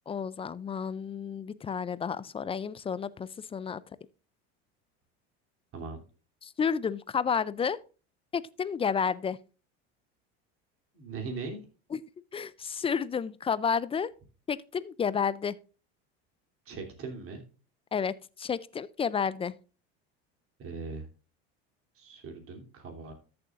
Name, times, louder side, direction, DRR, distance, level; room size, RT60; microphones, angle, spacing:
voice 1, 0.1-3.8 6.4-7.8 8.3-9.4 11.9-12.0 12.3-14.1 14.5-15.5 17.9-19.5, left 6 dB, 20° left, 0.4 m, -31 dB
voice 2, 10.9-11.6 16.6-17.4 20.6-21.1 21.9-23.1, right 4 dB, 45° right, 3.2 m, -39 dB
13.5 x 7.0 x 2.5 m
supercardioid pair, 105°, 32 cm